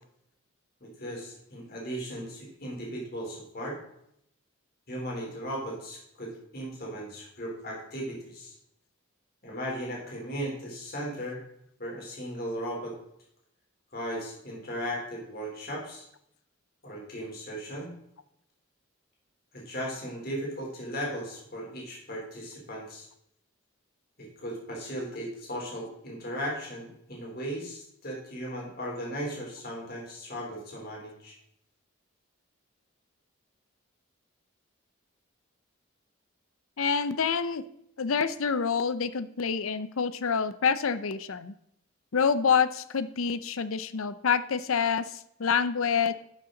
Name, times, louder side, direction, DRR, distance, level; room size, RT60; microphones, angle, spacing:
voice 1, 0.8-3.8 4.9-8.6 9.4-11.4 11.8-13.0 13.9-16.0 16.8-17.9 19.5-23.1 24.2-31.3, equal, 45° left, -3 dB, 3.6 m, -37 dB
voice 2, 36.8-37.6 38.0-41.5 42.1-46.1, left 6 dB, 75° left, 14 dB, 0.6 m, -27 dB
12.5 x 6.8 x 3.9 m, 0.75 s
head